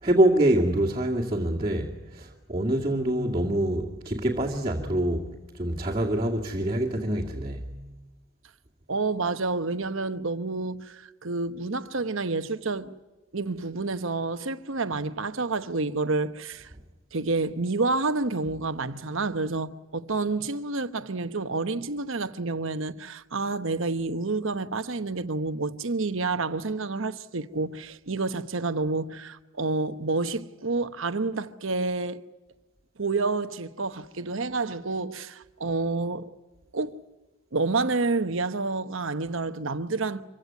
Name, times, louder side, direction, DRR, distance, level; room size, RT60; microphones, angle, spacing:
voice 1, 0.0-5.3 5.5-7.7, right 1 dB, 25° right, 2.3 m, -25 dB
voice 2, 8.9-12.9 13.3-16.7 17.1-32.2 33.0-36.3 36.7-37.0 37.5-40.2, right 3 dB, 60° right, 1.0 m, -29 dB
26.0 x 16.5 x 9.5 m
head